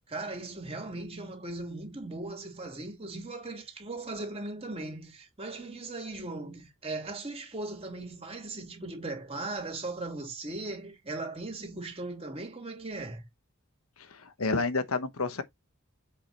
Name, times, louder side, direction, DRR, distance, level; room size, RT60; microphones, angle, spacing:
voice 1, 0.0-13.3, right 2 dB, 30° right, 2.8 m, -38 dB
voice 2, 14.1-15.4, left 3 dB, 90° left, 1.1 m, -30 dB
7.5 x 4.8 x 4.2 m
head